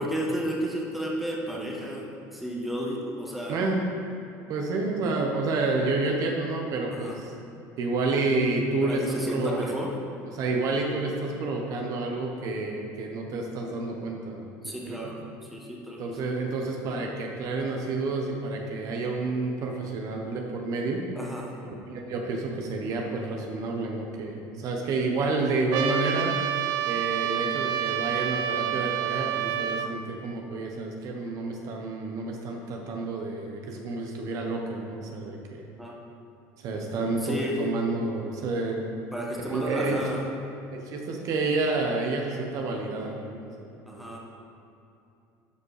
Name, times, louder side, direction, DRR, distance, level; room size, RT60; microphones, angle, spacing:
voice 1, 0.0-3.6 6.0-6.2 6.9-7.2 8.8-9.9 14.6-16.3 21.1-21.6 35.8-36.0 37.2-37.6 39.1-40.2 43.9-44.2, equal, ahead, -3 dB, 1.6 m, -33 dB
voice 2, 3.5-3.9 4.5-7.3 7.8-9.7 10.3-15.0 16.0-21.0 21.6-26.3 26.9-35.6 36.6-38.8 39.5-40.1 40.7-44.2, right 3 dB, 55° right, 1 dB, 1.2 m, -29 dB
Trumpet, 25.7-29.9, right 10 dB, 70° right, 0.5 m, -28 dB
11.5 x 5.2 x 4.9 m, 2.8 s
cardioid pair, 120°, 7 cm